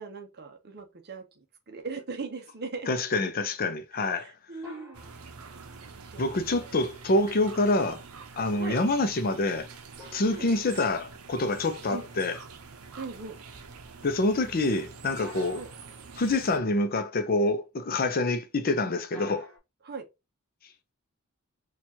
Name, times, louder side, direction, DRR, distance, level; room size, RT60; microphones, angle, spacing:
voice 1, 0.0-2.9 3.9-5.0 5.5-6.8 8.6-8.8 10.3-10.5 11.9-12.0 13.0-13.4 15.5-15.7 19.8-20.0, right 4 dB, 50° right, 0.7 m, -40 dB
voice 2, 2.9-4.3 6.2-8.0 8.4-9.7 10.1-12.4 14.0-15.6 16.2-19.5, left 2 dB, 45° left, 0.6 m, -26 dB
sound 1, 4.6-5.7 10.0-11.5 15.2-16.4 19.1-19.6, left 3 dB, 10° right, 2.2 m, -48 dB
sound 2, 4.9-16.6, right 5 dB, 85° right, 0.6 m, -46 dB
4.3 x 2.4 x 2.8 m
head